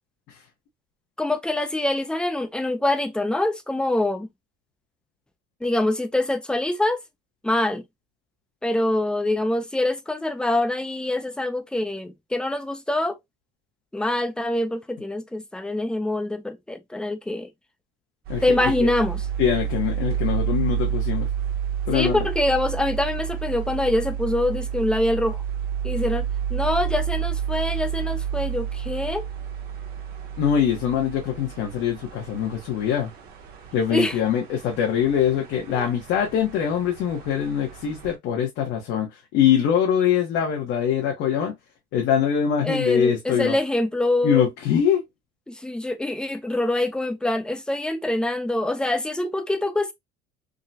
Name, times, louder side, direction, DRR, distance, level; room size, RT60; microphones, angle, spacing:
voice 1, 1.2-4.3 5.6-7.0 7.4-7.8 8.6-13.2 13.9-17.5 18.4-19.3 21.9-25.4 25.8-29.3 33.9-34.2 35.7-35.9 42.6-44.5 45.5-49.9, left 1 dB, 5° left, 0.4 m, -25 dB
sound 1, 18.2-38.1, right 9 dB, 50° right, 1.0 m, -30 dB
voice 2, 19.4-21.3 21.9-22.2 30.4-33.1 33.7-41.5 41.9-43.6 44.2-45.0, left 8 dB, 70° left, 1.0 m, -23 dB
3.7 x 2.2 x 2.6 m
cardioid pair, 150°, 19 cm